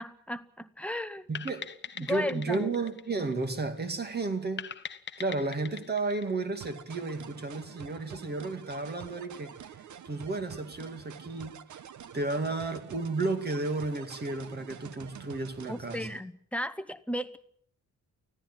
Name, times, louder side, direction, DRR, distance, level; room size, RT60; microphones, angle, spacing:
voice 1, 0.0-1.3 2.0-2.7 15.7-17.4, left 1 dB, 5° left, 0.8 m, -35 dB
voice 2, 1.3-1.7 1.9-4.7 5.2-9.8 10.0-11.6 12.1-16.1, right 3 dB, 35° right, 2.4 m, -33 dB
sound 1, 1.4-3.9 4.6-7.1, left 7 dB, 40° left, 0.9 m, -42 dB
sound 2, 6.6-16.2, right 9 dB, 75° right, 1.1 m, -47 dB
24.5 x 16.0 x 7.5 m
wide cardioid pair, 180°, 30 cm